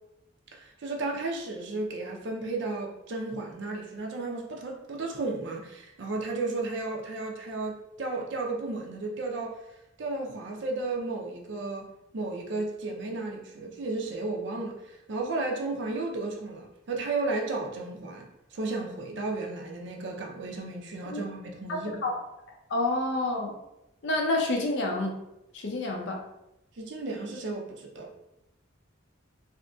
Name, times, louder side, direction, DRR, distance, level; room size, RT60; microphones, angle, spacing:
voice 1, 0.5-9.6 10.0-21.9 26.8-28.1, right 3 dB, 60° right, 1 dB, 0.5 m, -33 dB
voice 2, 21.7-22.2 22.7-23.5 24.0-25.2 25.5-26.3, left 2 dB, 60° left, 2 dB, 0.5 m, -28 dB
2.7 x 2.5 x 2.3 m, 0.87 s
head